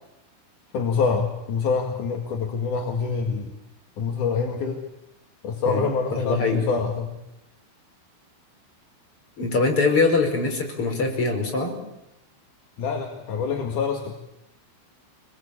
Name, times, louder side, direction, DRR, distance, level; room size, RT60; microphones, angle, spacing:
voice 1, 0.7-3.5 4.0-4.8 5.4-7.1 12.8-14.1, left 5 dB, 50° left, 2 dB, 2.7 m, -26 dB
voice 2, 6.1-6.6 9.4-11.7, left 3 dB, 30° left, 2 dB, 5.8 m, -22 dB
27.0 x 21.0 x 8.6 m, 0.88 s
omnidirectional pair, 5.7 m